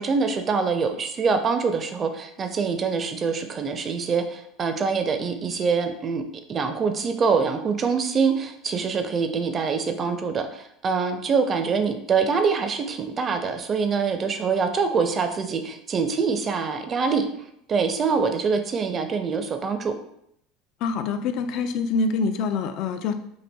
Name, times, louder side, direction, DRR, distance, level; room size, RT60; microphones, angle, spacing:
voice 1, 0.0-6.2 6.5-17.3 17.7-19.9, right 5 dB, 35° right, 7 dB, 0.4 m, -24 dB
voice 2, 20.8-23.2, left 4 dB, 60° left, 9 dB, 0.3 m, -25 dB
4.2 x 2.5 x 2.2 m, 0.74 s
hypercardioid pair, 85°, 0 cm